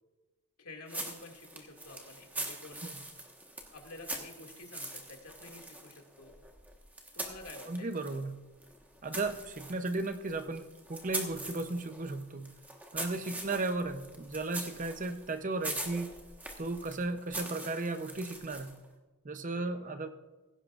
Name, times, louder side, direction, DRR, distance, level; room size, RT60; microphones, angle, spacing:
voice 1, 0.6-2.8 3.7-6.3 7.1-8.2 13.2-13.5 19.5-19.9, left 2 dB, 80° left, 1 dB, 2.2 m, -50 dB
sound 1, 0.9-8.3 8.6-18.8, right 1 dB, 5° right, 1.3 m, -43 dB
voice 2, 7.7-8.4 9.0-12.5 12.9-16.1 16.6-18.8 19.2-20.1, right 3 dB, 35° right, 8 dB, 0.7 m, -35 dB
16.5 x 16.5 x 2.5 m, 1.2 s
head